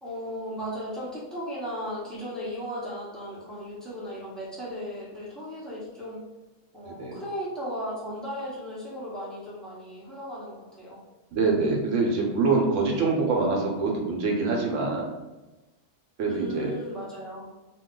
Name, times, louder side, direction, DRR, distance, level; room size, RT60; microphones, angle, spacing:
voice 1, 0.0-6.2 6.7-11.0 16.3-17.4, equal, ahead, -9 dB, 0.9 m, -36 dB
voice 2, 6.9-7.2 11.3-15.1 16.2-16.7, right 3 dB, 75° right, 0 dB, 1.0 m, -25 dB
2.5 x 2.2 x 3.7 m, 1.1 s
omnidirectional pair, 1.3 m